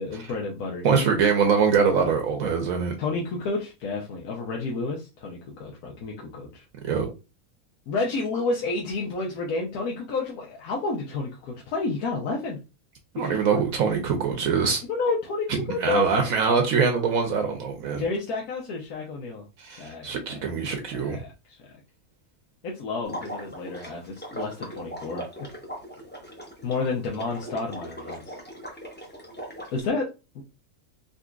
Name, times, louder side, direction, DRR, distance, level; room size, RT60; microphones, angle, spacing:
voice 1, 0.0-1.0 3.0-6.6 7.9-12.6 13.2-13.6 14.8-16.1 18.0-19.4 19.8-20.4 20.9-21.6 22.6-25.5 26.6-28.4 29.7-30.1 30.3-30.4, left 3 dB, 85° left, 1.2 m, -30 dB
voice 2, 0.8-2.9 6.8-7.1 13.1-14.8 15.8-18.0 19.6-21.2, right 5 dB, 75° right, 1.0 m, -23 dB
Water / Liquid, 23.0-29.8, equal, 10° left, 0.7 m, -39 dB
3.8 x 2.7 x 2.3 m
omnidirectional pair, 1.5 m